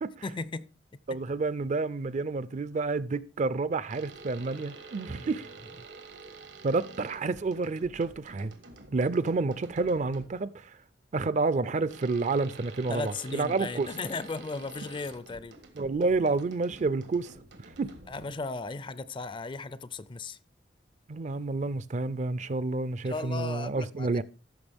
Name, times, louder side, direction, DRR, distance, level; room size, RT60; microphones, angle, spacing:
voice 1, 0.2-0.7 5.2-5.3 12.9-15.6 18.1-20.4 23.0-24.1, left 3 dB, 30° left, 0.4 m, -36 dB
voice 2, 1.1-5.5 6.6-8.5 8.9-10.8 11.1-13.9 15.8-17.3 17.8-17.9 21.1-24.2, right 3 dB, 40° right, 0.4 m, -29 dB
sound 1, 3.9-10.5 11.9-18.5, right 3 dB, 85° right, 1.6 m, -49 dB
14.0 x 6.5 x 3.5 m
head